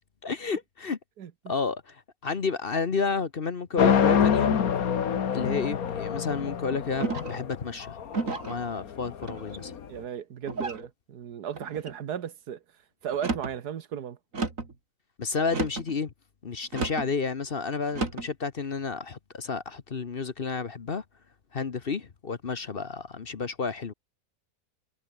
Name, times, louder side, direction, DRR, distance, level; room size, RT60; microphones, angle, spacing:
voice 1, 0.2-1.0 1.5-4.6 5.3-8.0 8.5-9.7 15.2-16.1 16.4-21.0 21.5-23.9, left 5 dB, 40° left, 1.1 m, -31 dB
sound 1, 3.8-9.9, left 8 dB, 65° left, 1.8 m, -26 dB
sound 2, 7.0-7.5 8.1-8.6 9.2-9.7 10.5-10.9 11.5-12.0 13.1-13.6 14.3-14.7 15.5-15.9 16.7-17.1 17.9-18.3, right 4 dB, 55° right, 3.3 m, -32 dB
voice 2, 9.9-12.6 13.0-14.2, right 9 dB, 85° right, 1.8 m, -35 dB
omnidirectional pair, 1.6 m